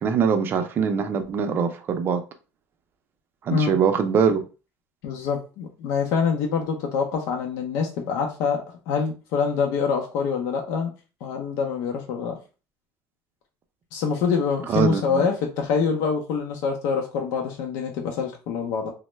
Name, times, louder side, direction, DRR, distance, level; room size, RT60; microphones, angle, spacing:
voice 1, 0.0-2.2 3.4-4.4 14.7-15.2, right 6 dB, 35° right, 0.5 m, -22 dB
voice 2, 5.0-10.9 11.2-12.4 13.9-18.9, left 6 dB, 70° left, 0.6 m, -25 dB
3.1 x 2.0 x 3.1 m
cardioid pair, 135°, 6 cm